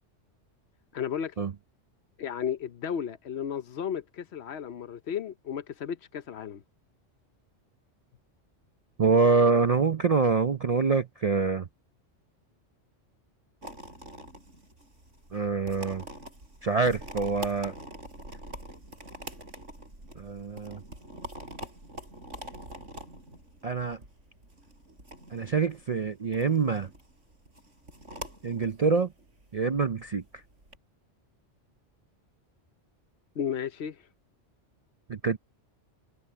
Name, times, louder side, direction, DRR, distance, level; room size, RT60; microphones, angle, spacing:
voice 1, 0.9-1.3 2.2-6.6 33.3-34.0, left 8 dB, 65° left, 1.0 m, -34 dB
voice 2, 9.0-11.7 15.3-16.0 16.6-17.7 20.2-20.8 23.6-24.0 25.3-26.9 28.4-29.1 29.5-30.4 35.1-35.4, right 4 dB, 45° right, 0.5 m, -25 dB
sound 1, 13.6-30.8, equal, 75° right, 7.6 m, -45 dB
omnidirectional pair, 1.3 m